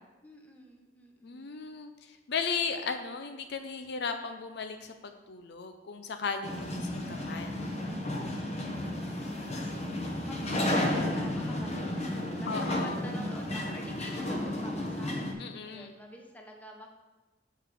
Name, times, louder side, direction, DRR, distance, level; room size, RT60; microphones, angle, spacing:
voice 1, 0.2-1.5 8.6-10.0 10.3-12.5 12.8-15.2 15.6-16.9, left 1 dB, 10° left, 1 dB, 1.1 m, -48 dB
voice 2, 1.2-8.0 12.5-13.0 15.4-15.9, left 5 dB, 65° left, 7 dB, 0.6 m, -36 dB
sound 1, 6.4-15.3, left 1 dB, 35° left, 1.1 m, -32 dB
6.6 x 5.4 x 6.8 m, 1.1 s
head